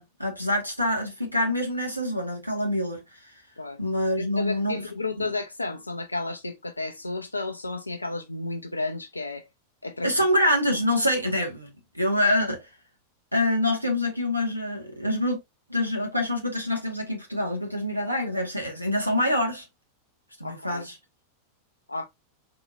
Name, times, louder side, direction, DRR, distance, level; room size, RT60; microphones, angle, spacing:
voice 1, 0.0-3.3 3.8-4.8 5.2-5.3 10.0-11.7 11.9-12.7 13.3-15.4 15.7-19.7 20.4-21.0, left 1 dB, 90° right, 0.8 m, -26 dB
voice 2, 4.2-9.5 9.8-10.1 20.4-20.8 21.9-22.1, left 3 dB, 80° left, 0.4 m, -32 dB
4.0 x 2.7 x 2.5 m
figure-of-eight pair, 90°, 0 cm